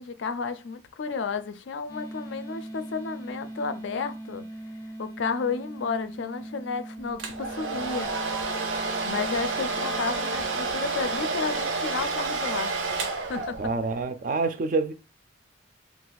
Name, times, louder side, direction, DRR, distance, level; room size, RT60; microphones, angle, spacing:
voice 1, 0.0-4.4 5.0-8.1 9.0-13.6, left 5 dB, 75° left, 0.4 m, -32 dB
sound 1, 1.9-11.6, right 1 dB, 15° left, 0.5 m, -41 dB
Domestic sounds home sounds, 7.2-13.9, right 3 dB, 85° right, 0.6 m, -30 dB
voice 2, 13.6-14.9, right 3 dB, 45° right, 0.3 m, -27 dB
2.3 x 2.3 x 4.0 m
head